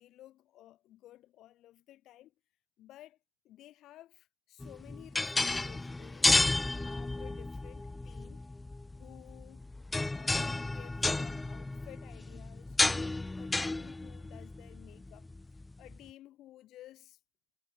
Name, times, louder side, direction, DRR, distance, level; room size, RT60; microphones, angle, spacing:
voice 1, 0.0-2.3 2.8-3.2 3.4-8.5 9.0-9.7 10.1-17.2, left 14 dB, 85° left, 4.5 m, -55 dB
sound 1, 4.6-16.0, left 2 dB, 15° left, 1.3 m, -32 dB
cardioid pair, 90°, 0 cm